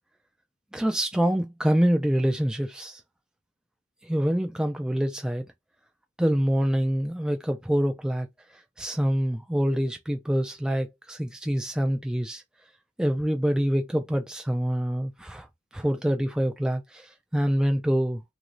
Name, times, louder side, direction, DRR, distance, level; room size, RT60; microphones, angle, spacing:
voice 1, 0.7-3.0 4.0-5.4 6.2-8.3 8.8-12.4 13.0-15.5 15.7-18.2, equal, 5° right, 0.3 m, -26 dB
3.0 x 2.5 x 3.0 m
head